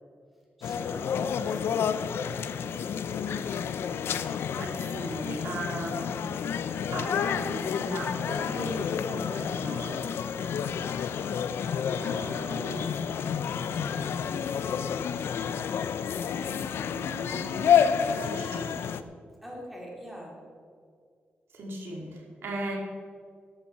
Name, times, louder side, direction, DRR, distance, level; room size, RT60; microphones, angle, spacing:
sound 1, 0.6-19.0, left 7 dB, 85° left, 0.5 m, -29 dB
voice 1, 0.6-3.5 10.4-10.7 12.2-14.5 19.4-20.3, equal, 5° right, -3 dB, 3.1 m, -44 dB
voice 2, 4.6-6.2 6.9-10.0 12.0-12.8 16.9-18.9 21.5-22.8, right 2 dB, 85° right, -1 dB, 2.5 m, -38 dB
13.5 x 11.5 x 4.3 m, 2.1 s
wide cardioid pair, 135°, 4 cm